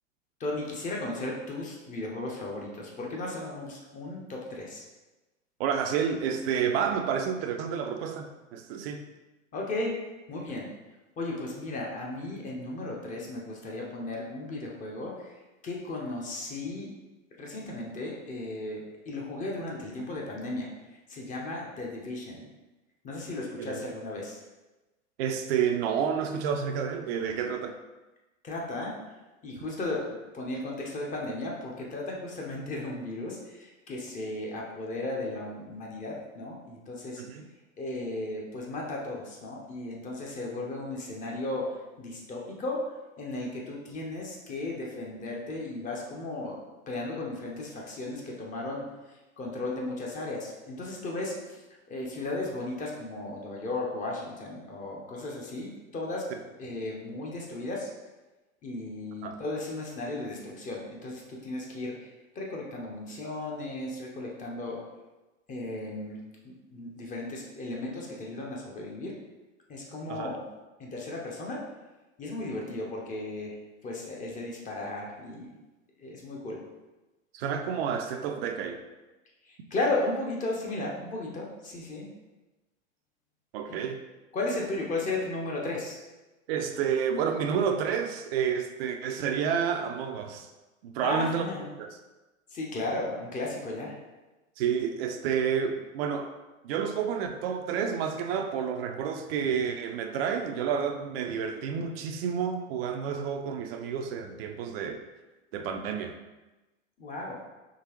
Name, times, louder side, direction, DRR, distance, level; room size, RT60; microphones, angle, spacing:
voice 1, 0.4-4.9 9.5-10.0 10.3-10.7 11.2-15.3 15.6-16.9 17.4-20.7 21.1-22.4 23.0-24.4 28.4-29.0 29.4-37.2 37.8-46.6 46.9-48.9 49.4-51.6 51.9-56.3 56.6-57.9 58.6-62.1 62.3-64.8 65.5-66.2 66.7-69.1 69.7-70.4 70.8-71.6 72.2-73.5 73.8-75.5 76.0-76.6 79.4-82.1 83.7-83.8 84.3-86.0 91.0-91.7 92.5-93.9 107.0-107.4, left 2 dB, 20° left, -2 dB, 0.6 m, -35 dB
voice 2, 5.6-9.1 23.6-23.8 25.2-27.8 37.2-37.5 56.3-56.4 59.2-59.4 70.1-70.4 77.3-78.8 83.5-84.0 86.5-90.5 90.8-91.5 91.8-92.0 94.6-96.3 96.6-105.0 105.5-106.2, right 7 dB, 50° right, 5 dB, 0.4 m, -30 dB
3.7 x 2.9 x 2.9 m, 1.1 s
figure-of-eight pair, 95°, 40 cm